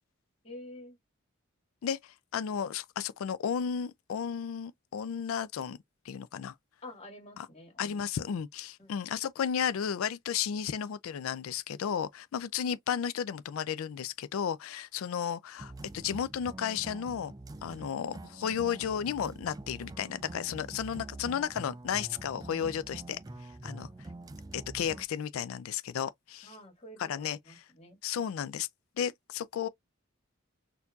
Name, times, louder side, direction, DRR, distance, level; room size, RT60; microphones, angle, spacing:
voice 1, 0.4-1.0 6.8-8.1 8.8-9.0 26.4-28.3, left 1 dB, 30° left, 1.8 m, -49 dB
voice 2, 1.8-5.8 6.1-6.5 7.4-7.5 7.8-17.3 17.6-23.2 23.6-23.9 24.5-26.6 27.0-27.6 28.0-28.7 29.0-29.7, left 8 dB, 85° left, 0.4 m, -33 dB
sound 1, 15.6-25.0, right 2 dB, 20° right, 0.3 m, -45 dB
4.4 x 2.7 x 2.3 m
head